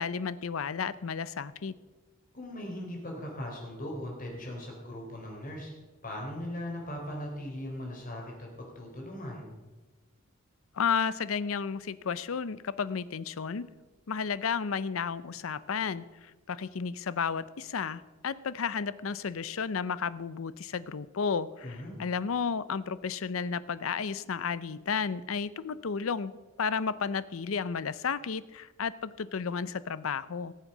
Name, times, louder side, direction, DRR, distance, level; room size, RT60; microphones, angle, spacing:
voice 1, 0.0-1.8 10.7-13.7 14.1-30.5, left 6 dB, 75° left, 16 dB, 0.6 m, -32 dB
voice 2, 2.3-5.7 6.0-9.6 21.6-22.0, left 1 dB, 40° left, 0 dB, 3.5 m, -39 dB
18.0 x 7.4 x 5.5 m, 1.2 s
head